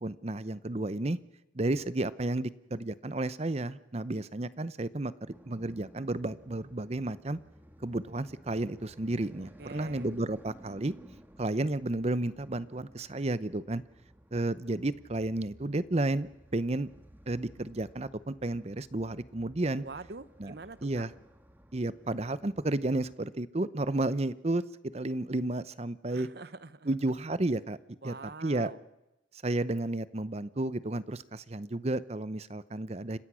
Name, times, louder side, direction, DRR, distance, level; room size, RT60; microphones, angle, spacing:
voice 1, 0.0-1.2 1.5-7.4 7.8-10.9 11.4-13.8 14.3-16.9 17.3-19.8 20.4-20.5 20.8-21.1 21.7-24.6 24.9-26.3 26.9-27.8 28.0-28.7 29.4-33.2, right 2 dB, 35° right, 16 dB, 0.7 m, -32 dB
sound 1, 5.3-23.2, equal, 10° right, 1.6 m, -56 dB
voice 2, 9.6-10.1 19.8-21.1 26.1-27.1 28.0-28.8, right 3 dB, 60° right, 15 dB, 0.9 m, -45 dB
29.5 x 16.0 x 6.3 m, 0.98 s
head